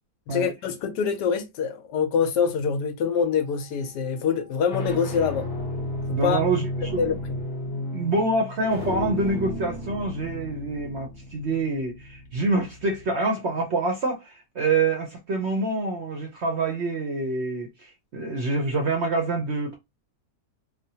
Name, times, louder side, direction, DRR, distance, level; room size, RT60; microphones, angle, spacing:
voice 1, 0.3-5.5 6.1-6.4 7.0-7.1, left 6 dB, 80° left, 1.3 m, -25 dB
sound 1, 3.2-3.7 4.4-13.1, left 1 dB, 40° left, 1.0 m, -33 dB
voice 2, 6.1-7.0 7.6-19.8, right 3 dB, 60° right, 0.7 m, -26 dB
3.4 x 2.1 x 2.7 m
omnidirectional pair, 1.8 m